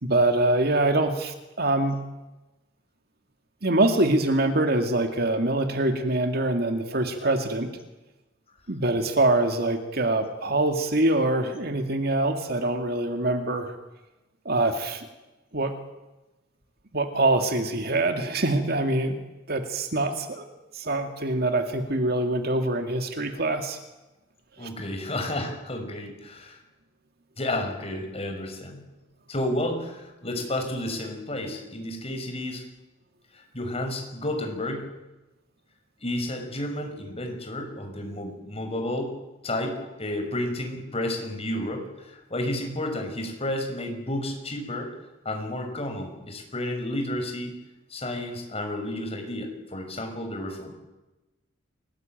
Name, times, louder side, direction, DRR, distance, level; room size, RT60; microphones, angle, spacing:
voice 1, 0.0-2.0 3.6-7.7 8.7-13.7 14.5-15.1 15.5-15.7 16.9-19.2 19.5-20.4 20.7-23.8 24.6-24.7, right 2 dB, 50° right, 6 dB, 2.2 m, -24 dB
voice 2, 24.6-26.6 27.4-28.8 29.3-32.6 33.3-34.9 36.0-39.1 39.4-44.9 45.2-47.5 47.9-50.7, left 1 dB, 30° left, 4 dB, 5.9 m, -31 dB
29.0 x 18.5 x 9.2 m, 1.1 s
head